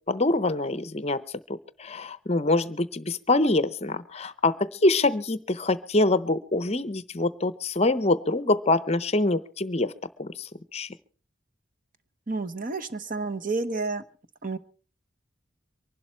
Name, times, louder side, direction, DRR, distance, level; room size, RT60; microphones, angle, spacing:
voice 1, 0.1-1.2 1.5-9.9 10.2-10.9, left 2 dB, 30° left, 16 dB, 0.7 m, -25 dB
voice 2, 12.3-14.0 14.4-14.6, right 3 dB, 45° right, 10 dB, 1.0 m, -30 dB
24.0 x 12.0 x 4.4 m, 0.40 s
head